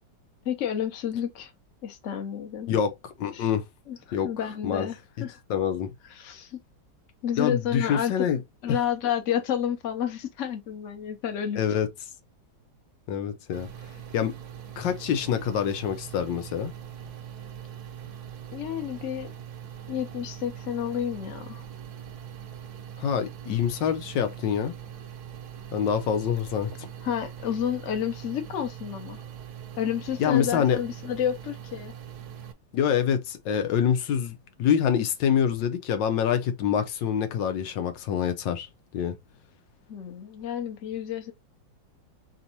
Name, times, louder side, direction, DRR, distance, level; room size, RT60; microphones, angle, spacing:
voice 1, 0.4-1.5 1.8-2.7 3.3-3.5 3.9-5.4 6.1-6.6 7.2-8.3 8.6-11.6 18.5-19.3 19.9-21.6 27.0-29.2 29.8-31.9 39.9-41.3, left 9 dB, 50° left, 1.1 m, -30 dB
voice 2, 2.7-3.6 4.1-4.3 4.6-4.9 5.5-5.9 7.4-8.4 11.6-11.9 13.1-13.7 14.1-14.3 14.8-16.7 23.0-24.7 25.7-26.7 30.2-30.8 32.7-38.7 38.9-39.1, left 8 dB, 85° left, 1.4 m, -26 dB
sound 1, 13.5-32.5, right 9 dB, 65° right, 1.2 m, -42 dB
4.0 x 3.6 x 2.8 m
omnidirectional pair, 2.0 m